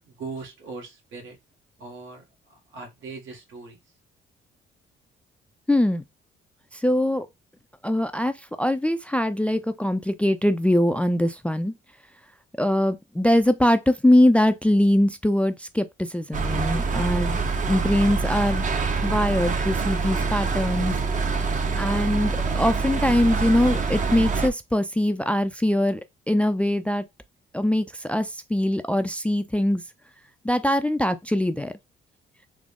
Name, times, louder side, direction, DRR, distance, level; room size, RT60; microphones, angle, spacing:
voice 1, 0.0-1.4 1.8-2.2 2.7-3.8, right 4 dB, 80° right, 1.4 m, -39 dB
voice 2, 5.7-6.0 6.7-7.3 7.8-11.7 12.6-17.4 17.7-18.7 19.0-21.0 21.8-27.1 27.5-29.8 30.4-31.7, left 1 dB, 5° left, 0.3 m, -22 dB
sound 1, 16.3-24.5, right 4 dB, 40° right, 0.7 m, -25 dB
3.7 x 2.0 x 3.4 m
cardioid pair, 90°, 20 cm